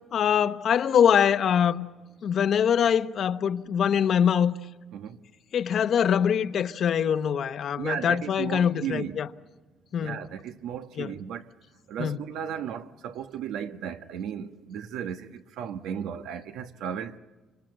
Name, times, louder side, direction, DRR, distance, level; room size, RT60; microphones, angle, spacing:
voice 1, 0.1-1.9 2.2-4.5 5.5-9.3 9.9-10.2 11.0-11.1 12.0-12.2, left 8 dB, 55° left, 0.9 m, -23 dB
voice 2, 7.8-9.2 10.0-11.5 11.9-17.2, right 9 dB, 85° right, 1.2 m, -35 dB
28.5 x 25.0 x 8.0 m
cardioid pair, 120°, 0 cm